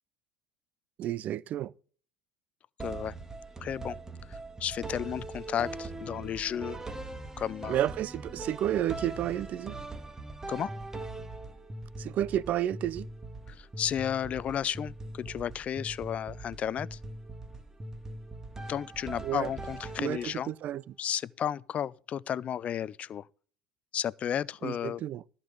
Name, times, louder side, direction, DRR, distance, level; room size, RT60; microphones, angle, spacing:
voice 1, 1.0-1.7 7.7-9.8 12.0-13.1 19.2-19.5 20.0-20.9 24.6-25.2, right 12 dB, 45° right, 0.5 m, -31 dB
voice 2, 2.8-3.1 3.6-4.0 4.3-6.8 7.4-7.8 10.5-10.7 13.5-17.0 18.7-20.5 21.0-23.3 23.9-25.0, left 9 dB, 40° left, 0.5 m, -33 dB
sound 1, 2.8-20.6, right 2 dB, 15° right, 1.7 m, -41 dB
14.0 x 5.5 x 6.5 m
hypercardioid pair, 80°, 3 cm